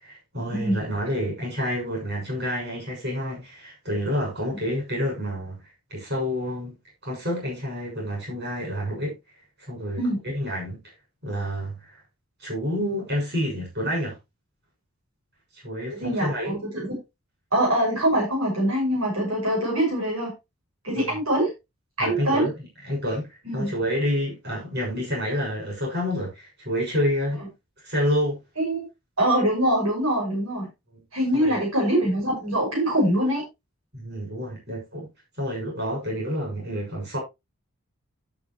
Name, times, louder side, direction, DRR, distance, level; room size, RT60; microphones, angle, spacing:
voice 1, 0.0-6.7 7.0-9.1 9.6-10.0 10.3-10.8 11.2-12.0 12.4-14.2 15.5-16.6 21.0-21.1 22.0-22.5 22.8-23.3 23.5-27.4 27.8-28.4 31.3-31.6 33.9-35.1 35.4-37.2, equal, 50° right, 6.8 m, -28 dB
voice 2, 15.9-16.9 17.5-20.3 20.8-21.5 22.0-22.5 23.5-23.7 28.6-28.9 29.2-30.7 31.1-33.4, right 1 dB, 75° right, 6.0 m, -23 dB
12.5 x 7.7 x 3.1 m
head